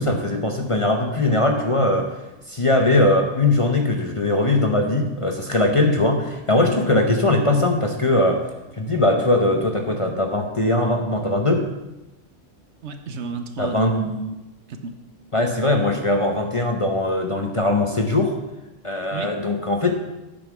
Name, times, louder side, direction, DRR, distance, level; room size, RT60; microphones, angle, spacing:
voice 1, 0.0-2.1 2.5-8.4 8.8-11.6 13.6-14.0 15.3-18.3 18.8-19.9, left 2 dB, 30° left, 2 dB, 0.7 m, -20 dB
voice 2, 12.8-14.3 14.7-15.0 19.1-19.3, right 4 dB, 65° right, 7 dB, 1.0 m, -31 dB
8.6 x 5.6 x 6.0 m, 1.0 s
omnidirectional pair, 1.3 m